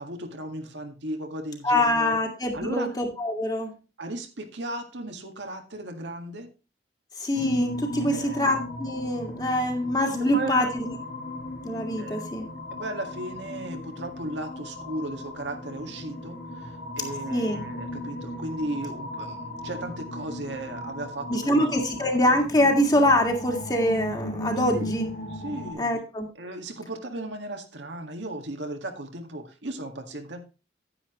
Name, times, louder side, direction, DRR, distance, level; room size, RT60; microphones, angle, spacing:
voice 1, 0.0-2.2 2.5-2.9 4.0-6.5 8.0-8.4 10.3-10.7 12.0-12.2 12.8-22.0 24.7-24.9 25.3-25.9 26.4-30.4, right 1 dB, 90° right, 4 dB, 1.9 m, -36 dB
voice 2, 1.6-3.7 7.2-10.9 11.6-12.5 17.3-17.6 21.3-25.1 25.8-26.3, left 1 dB, 20° left, 3 dB, 1.9 m, -24 dB
sound 1, 7.3-25.7, left 1 dB, 60° left, 3.4 m, -37 dB
9.9 x 9.9 x 3.1 m, 0.31 s
head